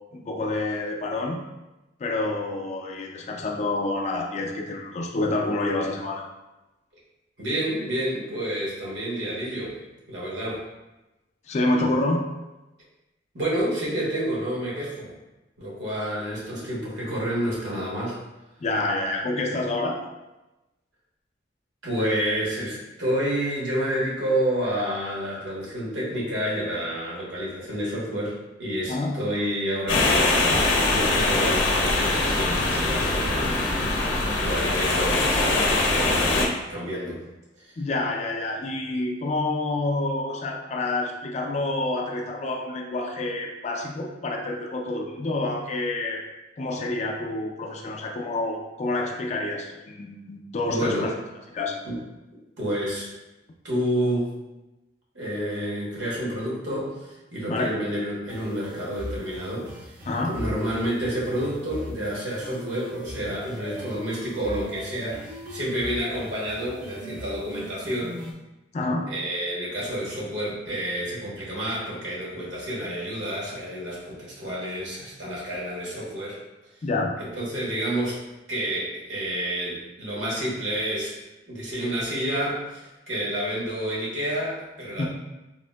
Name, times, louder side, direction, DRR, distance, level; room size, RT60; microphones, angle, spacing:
voice 1, 0.1-1.4 2.0-6.2 11.5-12.2 18.6-20.0 28.9-29.2 37.8-46.2 46.6-51.1 51.5-51.8 57.5-57.7 60.1-60.4 68.7-69.1 76.8-77.1 85.0-85.1, left 2 dB, 35° left, 1 dB, 0.3 m, -28 dB
voice 2, 7.4-9.8 10.1-10.6 13.3-15.1 15.6-18.2 21.8-37.2 37.6-37.8 50.7-51.1 51.8-52.0 52.6-53.1 53.6-54.3 55.1-60.0 60.3-68.2 69.1-76.4 77.2-78.2 78.5-81.2 81.4-85.1, right 1 dB, 80° right, -5 dB, 1.1 m, -29 dB
sound 1, 29.9-36.5, left 2 dB, 90° left, 0.5 m, -22 dB
sound 2, 58.3-68.3, equal, 45° right, 0.6 m, -38 dB
3.6 x 2.5 x 2.2 m, 1.0 s
head